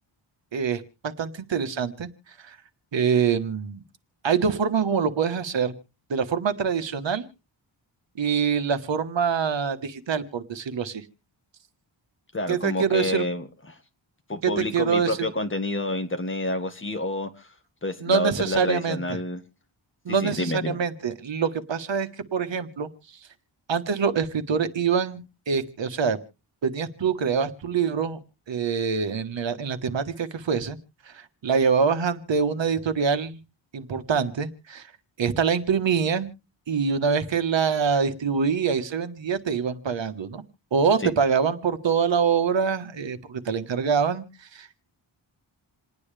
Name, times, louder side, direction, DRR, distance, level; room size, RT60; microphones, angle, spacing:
voice 1, 0.5-2.1 2.4-2.6 2.9-3.8 4.2-5.8 6.1-7.3 8.2-11.0 12.5-13.2 14.4-15.3 18.0-19.0 20.0-23.2 23.7-26.2 26.6-28.2 28.5-30.8 31.1-33.4 33.7-34.9 35.2-36.3 36.7-40.4 40.7-44.8, right 6 dB, 65° right, 1.4 m, -25 dB
voice 2, 12.3-13.8 14.3-17.5 17.8-19.4 20.2-20.8 41.0-41.1, left 2 dB, 25° left, 1.8 m, -29 dB
28.0 x 9.6 x 3.4 m
wide cardioid pair, 130°, 48 cm